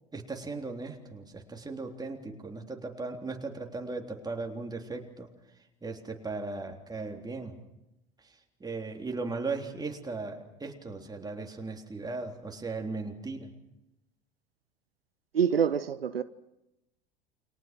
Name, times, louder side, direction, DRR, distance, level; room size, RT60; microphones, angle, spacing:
voice 1, 0.1-5.3 5.8-7.5 8.2-13.5, right 3 dB, 15° right, 3.5 m, -37 dB
voice 2, 15.3-16.2, right 7 dB, 80° right, 0.8 m, -26 dB
29.5 x 23.5 x 6.0 m
figure-of-eight pair, 75°, 29 cm